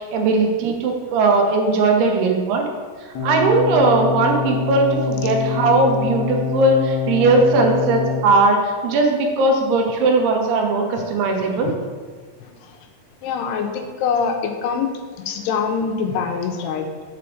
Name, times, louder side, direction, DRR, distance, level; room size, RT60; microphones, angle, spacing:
voice 1, 0.0-2.6 3.2-11.7, right 3 dB, 80° right, 2 dB, 3.0 m, -18 dB
sound 1, 3.1-8.2, left 6 dB, 70° left, 1.8 m, -25 dB
voice 2, 13.2-14.9 15.2-16.9, left 6 dB, 85° left, 5 dB, 2.8 m, -24 dB
6.4 x 5.2 x 7.0 m, 1.5 s
omnidirectional pair, 4.6 m